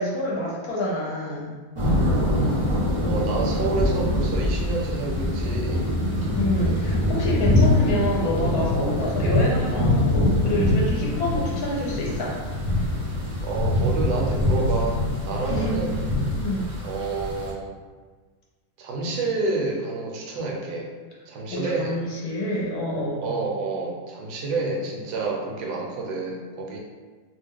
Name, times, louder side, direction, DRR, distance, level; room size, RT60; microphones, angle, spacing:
voice 1, 0.0-1.5 6.3-12.3 15.4-15.9 16.4-16.7 21.5-23.3, left 1 dB, 70° left, -4 dB, 1.1 m, -27 dB
sound 1, 1.8-17.5, left 1 dB, 35° right, 0.5 m, -24 dB
voice 2, 3.1-5.9 13.4-16.0 16.8-17.8 18.8-20.9 21.3-22.0 23.2-26.8, right 3 dB, 75° right, -1 dB, 1.1 m, -29 dB
2.8 x 2.1 x 3.5 m, 1.4 s
omnidirectional pair, 1.8 m